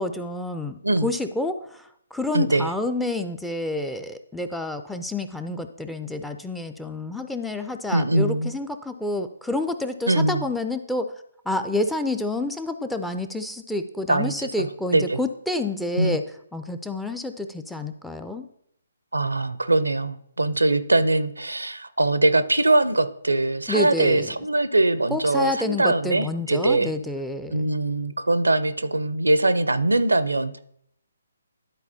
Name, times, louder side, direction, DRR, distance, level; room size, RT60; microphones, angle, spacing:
voice 1, 0.0-11.1 11.5-16.2 16.5-18.5 23.7-24.3 25.1-27.7, left 2 dB, 5° left, 7 dB, 0.4 m, -29 dB
voice 2, 2.3-2.7 7.9-8.5 10.1-10.4 14.1-15.2 16.0-16.2 19.1-26.9 27.5-30.6, right 2 dB, 85° right, 13 dB, 0.5 m, -22 dB
11.0 x 4.2 x 2.7 m, 0.70 s
figure-of-eight pair, 140°, 0 cm